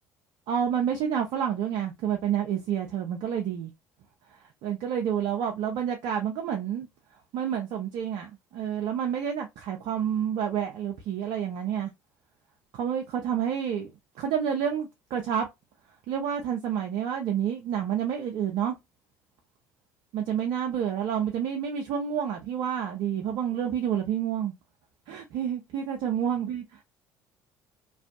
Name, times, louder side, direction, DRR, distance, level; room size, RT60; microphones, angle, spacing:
voice 1, 0.5-3.7 4.3-6.9 7.3-11.9 12.7-13.9 14.2-15.5 16.1-18.8 20.1-24.5 25.1-26.8, right 9 dB, 65° right, 0.5 m, -29 dB
2.6 x 2.4 x 2.2 m
hypercardioid pair, 60°, 8 cm